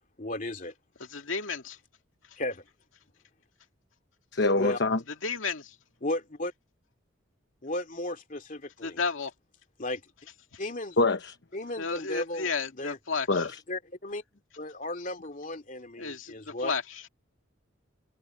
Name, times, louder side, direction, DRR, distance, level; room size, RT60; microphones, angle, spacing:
voice 1, 0.2-0.7 2.4-2.6 4.6-4.8 6.0-6.5 7.6-9.0 9.8-10.0 10.6-11.0 11.5-13.0 13.7-14.2 14.6-16.8, left 1 dB, 40° left, 2.7 m, -35 dB
voice 2, 1.1-1.8 5.2-5.7 8.8-9.3 11.8-13.3 16.0-16.3 16.6-16.8, left 5 dB, 80° left, 2.2 m, -32 dB
voice 3, 4.3-5.0 11.0-11.4 13.3-13.6, left 2 dB, 60° left, 1.1 m, -25 dB
head